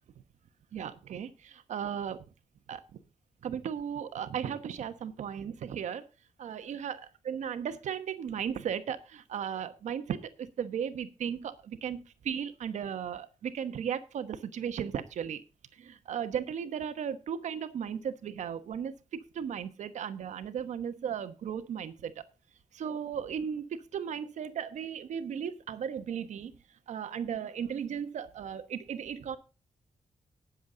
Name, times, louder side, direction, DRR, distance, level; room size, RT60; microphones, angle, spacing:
voice 1, 0.7-2.2 2.7-2.8 3.4-6.0 6.4-15.4 15.8-22.2 22.7-23.7 23.9-26.5 26.9-29.4, right 8 dB, 80° right, 11 dB, 1.1 m, -36 dB
18.0 x 7.3 x 3.8 m, 0.31 s
wide cardioid pair, 165°, 12 cm